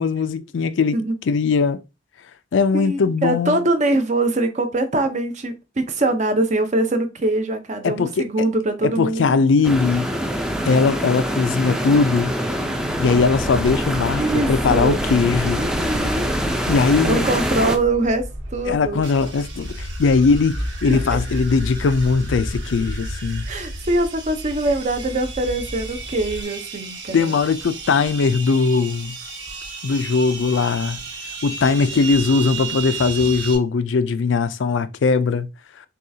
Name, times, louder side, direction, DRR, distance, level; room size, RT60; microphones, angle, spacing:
voice 1, 0.0-1.0 1.3-1.8 2.5-3.6 7.8-8.3 8.8-10.1 10.6-12.3 13.0-15.6 16.7-17.3 18.7-23.5 27.1-29.2 29.8-31.0 31.4-35.5, left 4 dB, 75° left, 0.4 m, -20 dB
voice 2, 2.7-9.4 14.1-15.0 15.6-16.3 17.0-19.0 20.9-21.0 23.5-27.3 31.9-32.0, right 2 dB, 40° right, 0.7 m, -23 dB
sound 1, 9.6-17.8, equal, 5° right, 0.5 m, -25 dB
sound 2, 12.7-26.4, equal, 85° right, 1.4 m, -31 dB
sound 3, 19.0-33.6, right 5 dB, 65° right, 1.5 m, -35 dB
6.4 x 2.4 x 2.7 m
head